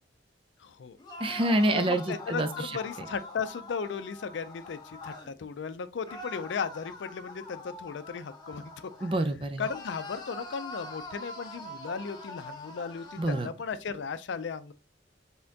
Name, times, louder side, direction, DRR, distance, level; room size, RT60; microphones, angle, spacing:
voice 1, 0.6-1.0 1.7-9.2 9.6-14.7, left 5 dB, 80° left, 0.4 m, -36 dB
Robin - Scream, 1.0-5.3 6.1-9.2 9.6-13.5, left 2 dB, 25° left, 0.8 m, -44 dB
voice 2, 1.2-2.5 9.0-9.6 13.2-13.5, right 1 dB, 30° right, 0.5 m, -26 dB
4.2 x 3.7 x 2.7 m
head